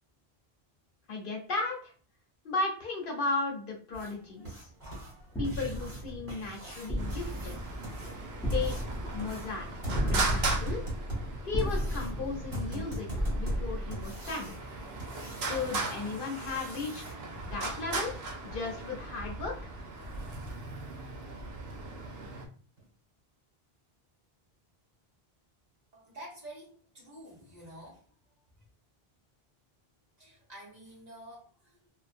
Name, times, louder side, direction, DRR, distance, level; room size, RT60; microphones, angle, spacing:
voice 1, 1.1-1.9 2.4-4.7 5.4-7.6 8.5-9.7 10.0-10.8 11.4-13.1 13.3-14.5 15.5-17.0 17.4-18.1 18.4-19.5, left 3 dB, 60° left, 0 dB, 0.8 m, -35 dB
sound 1, 3.9-17.1 19.4-19.5 20.0-20.1 20.5-20.6 21.1-21.2 21.7-21.8 22.2-22.3 22.8-22.9, right 1 dB, 65° right, 1.5 m, -41 dB
sound 2, 5.3-14.8, equal, 5° left, 0.5 m, -35 dB
Traffic noise roadway noise, 7.0-22.5, right 3 dB, 85° right, 0.9 m, -38 dB
voice 2, 25.9-28.6 30.2-31.9, right 1 dB, 45° right, -5 dB, 1.1 m, -49 dB
2.5 x 2.1 x 2.4 m, 0.43 s
omnidirectional pair, 1.0 m